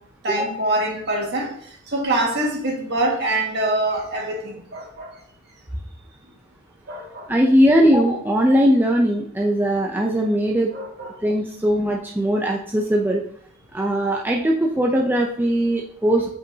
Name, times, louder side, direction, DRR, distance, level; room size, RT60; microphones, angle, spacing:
voice 1, 0.2-5.1 6.9-7.3 10.7-11.1, right 1 dB, 55° right, -1 dB, 1.8 m, -25 dB
voice 2, 7.3-10.7 11.2-13.2 13.7-16.3, equal, 10° right, -1 dB, 0.5 m, -19 dB
8.2 x 5.2 x 2.8 m, 0.64 s
head